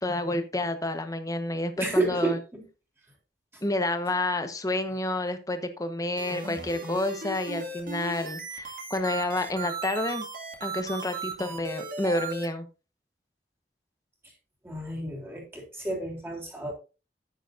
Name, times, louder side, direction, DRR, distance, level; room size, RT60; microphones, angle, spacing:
voice 1, 0.0-2.4 3.6-10.3 10.6-12.7, left 2 dB, 20° left, 1.1 m, -29 dB
voice 2, 1.8-2.4 14.6-16.7, right 2 dB, 15° right, 3.4 m, -30 dB
sound 1, 6.2-12.5, right 4 dB, 50° right, 2.1 m, -37 dB
10.5 x 9.1 x 2.6 m
head